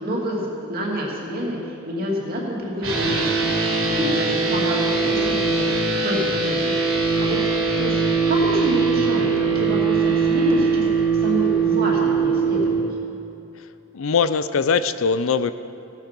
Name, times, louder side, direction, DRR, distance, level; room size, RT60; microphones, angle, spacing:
voice 1, 0.0-5.6 5.9-7.4 7.6-12.9, equal, 45° right, -3 dB, 2.7 m, -28 dB
sound 1, 2.8-12.8, right 4 dB, 80° right, 4.1 m, -21 dB
voice 2, 13.9-15.5, left 5 dB, 70° left, 13 dB, 0.5 m, -21 dB
17.0 x 8.8 x 6.0 m, 2.7 s
head